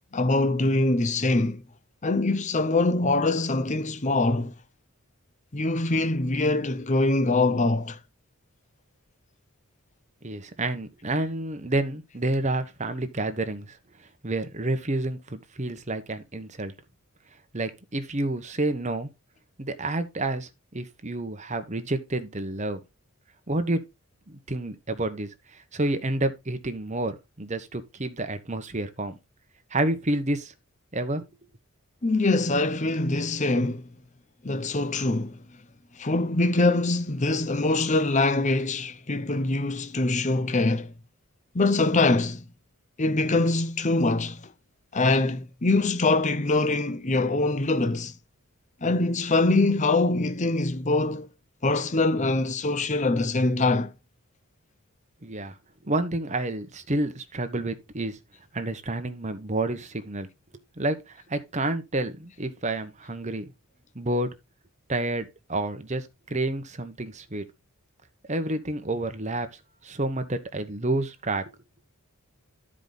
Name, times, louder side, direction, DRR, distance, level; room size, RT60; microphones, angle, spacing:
voice 1, 0.1-1.6 2.0-4.5 5.5-8.0 32.0-33.9 34.4-35.4 36.0-40.9 41.5-42.4 43.0-44.5 44.9-48.1 48.8-51.3 51.6-53.9, left 2 dB, 35° left, 0.7 m, -23 dB
voice 2, 10.2-13.8 14.2-16.7 17.5-19.1 19.6-22.8 23.5-23.8 24.3-29.2 29.7-30.5 30.9-31.3 55.2-55.5 55.8-58.2 58.5-60.3 60.8-63.5 63.9-64.3 64.9-67.5 68.3-69.5 69.8-71.5, right 2 dB, 30° right, 1.1 m, -29 dB
12.5 x 5.0 x 4.0 m
head